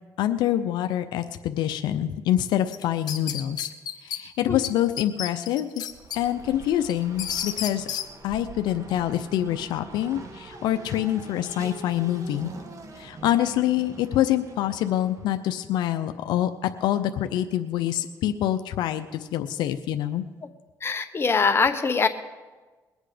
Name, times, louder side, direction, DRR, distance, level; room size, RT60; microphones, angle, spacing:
voice 1, 0.2-3.7 4.0-5.7 6.1-7.9 8.2-12.5 13.0-20.2, left 12 dB, 85° left, 8 dB, 0.6 m, -26 dB
sound 1, 2.7-4.2 4.6-4.7 5.0-6.2 6.6-8.1, left 9 dB, 70° left, 1.1 m, -31 dB
Race car auto racing, 5.8-15.5, right 3 dB, 45° right, 1.5 m, -44 dB
voice 2, 20.8-22.1, left 4 dB, 35° left, 7 dB, 1.2 m, -22 dB
21.5 x 8.1 x 5.0 m, 1.3 s
cardioid pair, 80°, 7 cm